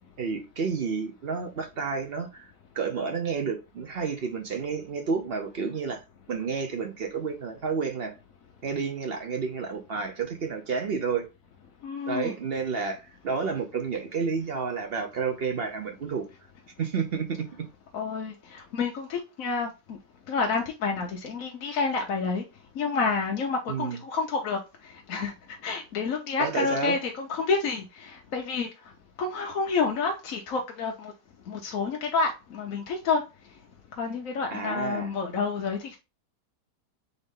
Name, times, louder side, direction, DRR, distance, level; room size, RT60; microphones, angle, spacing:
voice 1, 0.2-8.1 8.6-11.3 12.1-16.3 16.8-17.5 23.7-24.0 26.4-27.0 34.5-35.1, right 5 dB, 60° right, 0.6 m, -30 dB
voice 2, 11.8-12.3 17.9-20.0 20.3-22.4 22.8-24.6 25.1-25.3 25.6-28.7 29.2-31.1 31.5-33.2 34.0-36.0, left 4 dB, 60° left, 1.0 m, -29 dB
4.0 x 3.8 x 3.5 m
omnidirectional pair, 1.8 m